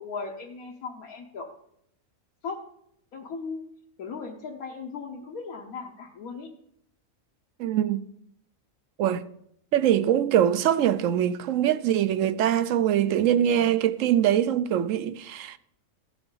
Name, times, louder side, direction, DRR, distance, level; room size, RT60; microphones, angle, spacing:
voice 1, 0.0-1.5 2.4-2.6 3.1-3.7 4.0-6.5, left 4 dB, 80° left, 1.5 m, -37 dB
voice 2, 7.6-8.0 9.0-9.3 9.7-15.6, right 10 dB, 70° right, 0.9 m, -23 dB
15.0 x 9.7 x 3.9 m
omnidirectional pair, 1.5 m